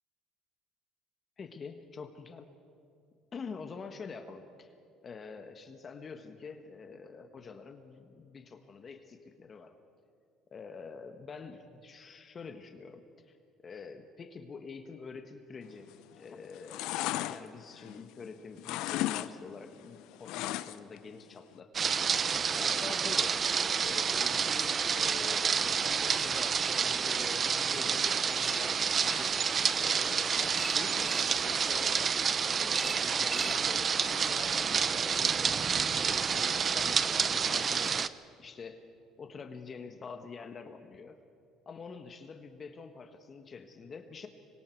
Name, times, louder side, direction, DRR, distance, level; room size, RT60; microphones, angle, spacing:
voice 1, 1.4-2.5 3.3-4.7 5.0-9.8 10.5-13.4 13.6-15.9 16.1-22.0 22.5-23.3 23.8-29.4 29.7-32.1 32.6-38.1 38.4-38.8 39.2-41.2 41.6-44.3, left 5 dB, 35° left, 6 dB, 1.3 m, -46 dB
sound 1, 15.8-16.2 16.5-18.3 18.6-19.3 19.6-21.0 21.3-21.4, left 15 dB, 80° left, 0.7 m, -35 dB
sound 2, 21.7-38.1, right 6 dB, 40° right, 0.6 m, -29 dB
sound 3, 24.5-25.3 26.1-26.9 28.4-29.3 30.5-31.3 32.7-33.6, right 2 dB, 15° right, 1.0 m, -44 dB
25.5 x 22.5 x 4.7 m, 2.5 s
cardioid pair, 100°, 0 cm